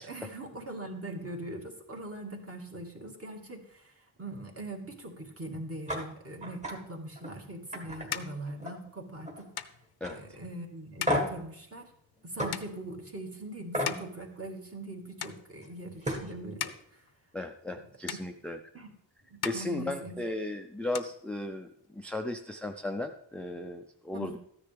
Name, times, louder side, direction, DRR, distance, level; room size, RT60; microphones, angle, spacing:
voice 1, 0.0-9.5 10.1-11.9 12.2-17.0 18.1-18.2 18.7-18.9 19.3-20.2 24.1-24.4, right 1 dB, 30° right, 2 dB, 1.9 m, -41 dB
sound 1, 5.9-6.0 6.4-6.7 7.1-7.3 7.7-8.9 9.2-9.6 10.0-10.1 11.1-11.4 12.4-12.5 13.7-14.0 15.6-15.7 16.0-16.3, left 1 dB, 15° right, 1.7 m, -32 dB
sound 2, 7.2-14.9 15.2-15.9 16.3-17.8 18.1-18.9 19.2-20.5 20.7-21.9, left 9 dB, 55° left, 0.6 m, -42 dB
voice 2, 10.0-10.4 17.3-18.6 19.4-24.4, left 1 dB, 5° left, 4 dB, 0.4 m, -36 dB
14.0 x 9.9 x 3.4 m, 0.72 s
wide cardioid pair, 135°, 45 cm